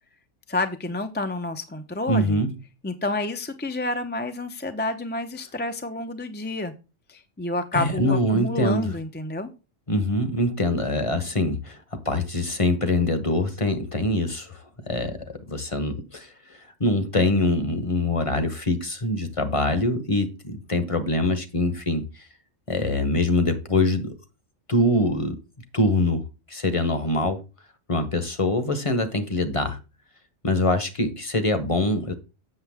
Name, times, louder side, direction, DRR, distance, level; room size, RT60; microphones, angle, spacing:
voice 1, 0.5-2.4 2.8-6.7 7.1-9.5, left 2 dB, 10° left, 0.5 m, -29 dB
voice 2, 2.1-2.5 7.7-8.9 9.9-22.3 22.7-24.1 24.7-25.4 25.7-27.4 27.9-29.8 30.4-32.1, left 2 dB, 30° left, 1.0 m, -24 dB
7.8 x 6.8 x 3.5 m
omnidirectional pair, 1.3 m